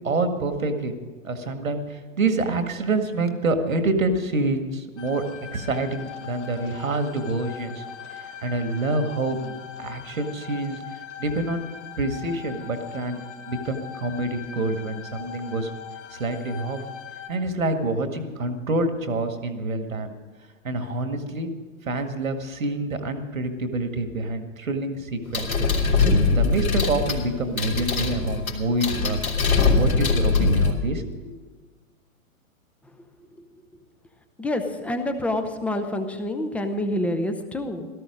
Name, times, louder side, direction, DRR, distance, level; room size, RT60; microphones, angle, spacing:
voice 1, 0.0-0.9 1.2-5.2 5.5-7.8 8.1-11.7 12.0-15.7 16.1-16.8 17.3-20.1 20.6-21.5 21.8-25.7 26.3-31.3, right 2 dB, 70° right, 7 dB, 2.0 m, -27 dB
sound 1, 5.0-17.3, left 8 dB, 55° left, 2.2 m, -41 dB
sound 2, 25.3-30.7, left 4 dB, 80° left, 3.2 m, -22 dB
voice 2, 34.4-37.9, left 1 dB, 5° left, 7 dB, 0.7 m, -27 dB
17.0 x 14.0 x 5.1 m, 1.4 s
figure-of-eight pair, 115°, 42 cm